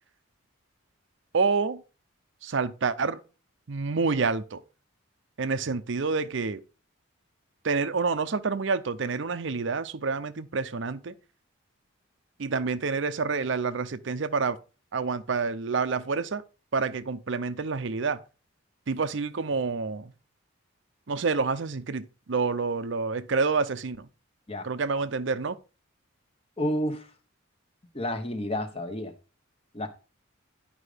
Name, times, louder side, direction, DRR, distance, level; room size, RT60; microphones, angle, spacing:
voice 1, 1.3-1.8 2.4-3.2 3.7-4.6 5.4-6.6 7.6-11.1 12.4-14.6 14.9-16.4 16.7-18.2 18.9-20.1 21.1-24.1 24.6-25.6, right 4 dB, 60° right, 0.6 m, -28 dB
voice 2, 26.6-27.1 27.9-29.1 29.7-29.9, equal, 30° left, 1.1 m, -30 dB
9.9 x 5.2 x 5.0 m
head